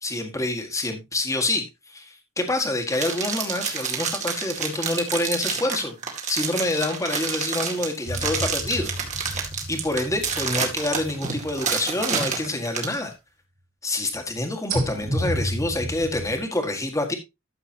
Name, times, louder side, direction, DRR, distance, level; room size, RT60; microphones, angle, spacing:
voice 1, 0.0-5.9 6.3-8.9 9.7-13.1 13.8-17.1, left 2 dB, 15° left, 1.7 m, -27 dB
sound 1, 2.9-13.0, right 6 dB, 35° right, 2.1 m, -28 dB
sound 2, 8.0-12.1 12.5-12.6 14.7-16.4, right 1 dB, 55° right, 4.1 m, -31 dB
13.0 x 7.0 x 2.8 m
head